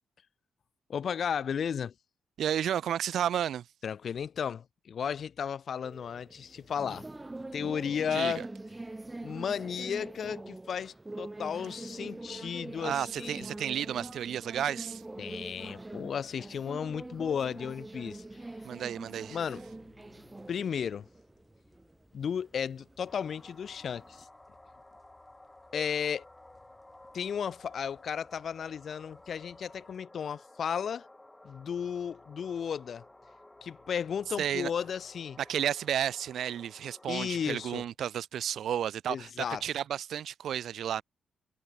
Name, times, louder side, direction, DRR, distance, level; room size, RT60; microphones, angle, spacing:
voice 1, 0.9-1.9 3.8-7.1 7.5-8.4 9.2-13.5 15.2-18.2 19.3-19.6 20.5-21.1 22.1-24.3 25.7-26.2 27.1-31.1 31.4-33.1 33.6-35.4 37.1-37.8 39.1-39.6, left 7 dB, 60° left, 0.3 m, -34 dB
voice 2, 2.4-3.6 8.1-8.4 12.8-15.0 18.6-19.4 34.4-34.7 35.4-41.0, right 10 dB, 75° right, 0.5 m, -32 dB
sound 1, 5.8-24.2, right 2 dB, 20° right, 0.4 m, -44 dB
sound 2, 11.9-30.0, left 3 dB, 30° left, 6.8 m, -68 dB
sound 3, 23.1-37.8, left 1 dB, 15° left, 7.7 m, -55 dB
supercardioid pair, 60°, 0 cm